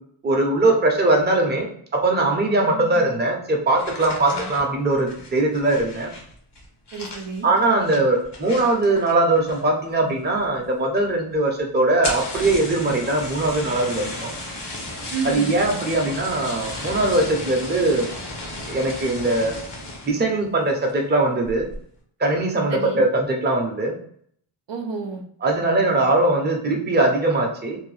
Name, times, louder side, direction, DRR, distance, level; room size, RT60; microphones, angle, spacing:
voice 1, 0.2-1.7 1.9-6.1 7.4-14.3 15.2-18.1 18.7-19.5 20.0-21.7 22.2-23.9 25.4-27.8, right 2 dB, 25° right, 1 dB, 0.6 m, -21 dB
voice 2, 2.7-3.0 4.3-4.5 6.9-7.5 15.1-15.5 22.7-23.0 24.7-25.2, right 4 dB, 85° right, 2 dB, 0.6 m, -30 dB
sound 1, 3.7-9.9 10.1-10.7 11.0-11.1 11.3-11.4 11.9-20.2 20.7-21.0 21.4-21.8, left 1 dB, 70° left, 0.9 m, -34 dB
2.7 x 2.2 x 3.1 m, 0.62 s
wide cardioid pair, 120°, 42 cm